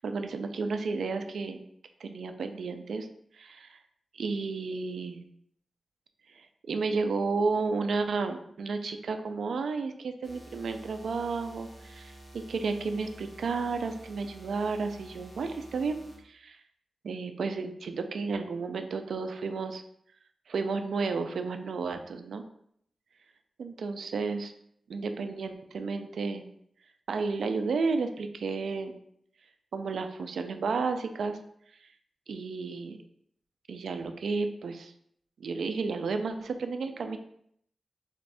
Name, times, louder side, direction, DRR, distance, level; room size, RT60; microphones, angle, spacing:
voice 1, 0.0-1.6 2.0-3.1 3.3-3.8 4.1-5.2 6.7-16.0 16.2-16.6 17.0-19.8 20.5-22.4 23.6-24.5 24.9-26.5 27.1-29.0 29.7-31.4 32.3-33.0 33.7-34.9 35.4-37.2, right 4 dB, 75° right, 7 dB, 0.3 m, -32 dB
sound 1, 10.2-16.2, right 1 dB, 35° left, 0.9 m, -50 dB
3.5 x 2.5 x 3.3 m, 0.68 s
wide cardioid pair, 110°, 0 cm